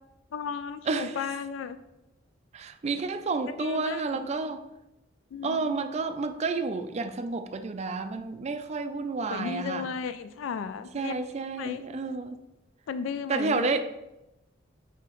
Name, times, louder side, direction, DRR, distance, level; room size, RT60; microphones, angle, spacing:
voice 1, 0.3-1.8 3.5-4.3 5.3-5.7 9.2-11.1 11.6-11.8 12.9-13.7, left 6 dB, 80° left, 0.3 m, -35 dB
voice 2, 0.9-1.2 2.5-4.6 5.4-9.9 10.9-12.4 13.3-13.9, right 3 dB, 35° right, 0.4 m, -30 dB
6.7 x 4.9 x 3.0 m
head